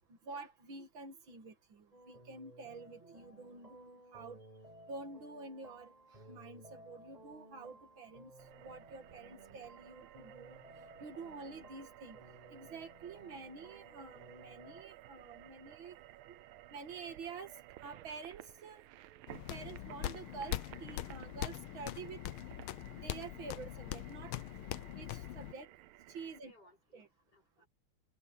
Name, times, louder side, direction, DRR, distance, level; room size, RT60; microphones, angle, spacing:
voice 1, 0.2-4.4 4.9-5.9 6.3-8.3 8.6-10.6 11.0-12.2 12.5-16.0 16.3-16.4 16.7-17.5 17.8-18.8 19.5-22.2 22.9-24.3 25.0-25.7 26.1-26.5 26.9-27.1, right 4 dB, 70° right, 2.8 m, -48 dB
sound 1, 1.9-14.8, right 1 dB, 15° right, 6.3 m, -58 dB
sound 2, 8.4-26.4, right 15 dB, 90° right, 1.5 m, -56 dB
sound 3, 19.3-25.5, left 14 dB, 85° left, 1.6 m, -42 dB
voice 2, 26.3-27.7, equal, 50° left, 6.1 m, -65 dB
omnidirectional pair, 2.3 m